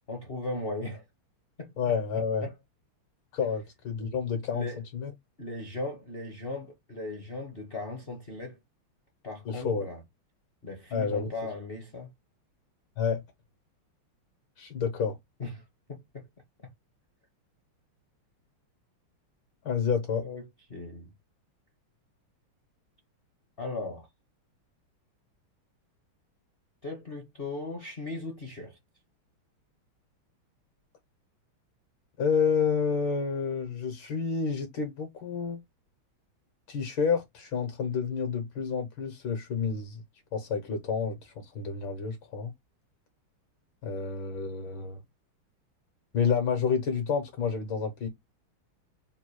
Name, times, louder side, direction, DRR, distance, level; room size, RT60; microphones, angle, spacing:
voice 1, 0.1-1.0 1.6-1.7 2.4-2.5 4.5-4.8 5.4-8.6 9.2-10.0 10.6-12.1 15.4-15.6 15.9-16.2 20.2-20.4 20.7-21.1 23.6-24.1 26.8-28.8, left 2 dB, 45° left, 0.8 m, -37 dB
voice 2, 1.8-2.5 3.3-4.7 4.9-5.1 9.5-9.9 10.9-11.3 13.0-13.2 14.6-15.2 19.7-20.2 32.2-35.6 36.7-40.0 40.3-42.5 43.8-45.0 46.1-48.1, left 6 dB, 70° left, 1.8 m, -29 dB
4.1 x 2.3 x 4.6 m
omnidirectional pair, 2.4 m